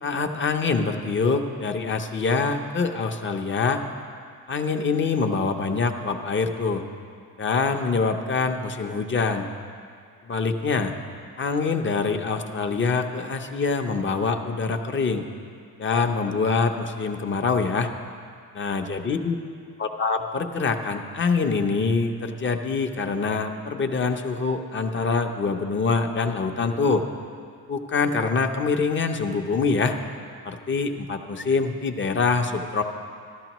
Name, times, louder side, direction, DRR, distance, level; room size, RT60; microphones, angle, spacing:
voice 1, 0.0-3.8 4.5-6.8 7.4-9.5 10.3-10.9 11.4-15.2 15.8-17.9 18.6-19.4 19.8-27.1 27.7-30.0 30.4-32.8, left 4 dB, 30° left, 5 dB, 0.7 m, -25 dB
14.5 x 12.0 x 3.0 m, 2.3 s
cardioid pair, 110°, 39 cm